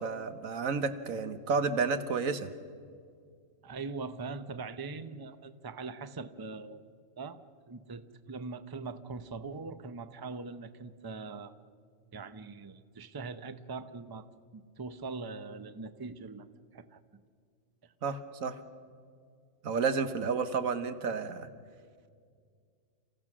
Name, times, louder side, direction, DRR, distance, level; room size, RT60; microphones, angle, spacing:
voice 1, 0.0-2.5 18.0-18.6 19.6-21.5, right 5 dB, 90° right, 10 dB, 1.5 m, -31 dB
voice 2, 3.6-6.8 7.2-7.4 7.7-11.5 12.1-14.3 14.5-16.5 16.7-17.0 17.8-17.9, right 4 dB, 25° right, 11 dB, 0.6 m, -42 dB
29.5 x 15.5 x 6.2 m, 2.2 s
omnidirectional pair, 1.4 m